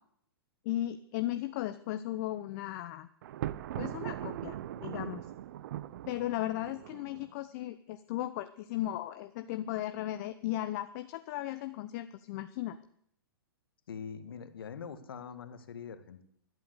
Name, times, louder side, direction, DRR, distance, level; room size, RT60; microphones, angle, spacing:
voice 1, 0.6-3.1 3.8-5.2 6.1-12.8, left 14 dB, 45° left, 10 dB, 0.9 m, -36 dB
Thunder, 3.2-7.3, right 12 dB, 55° right, 0.7 m, -40 dB
voice 2, 13.9-16.2, left 7 dB, 70° left, 10 dB, 2.0 m, -43 dB
13.0 x 12.0 x 8.3 m, 0.70 s
hypercardioid pair, 120°, 12 cm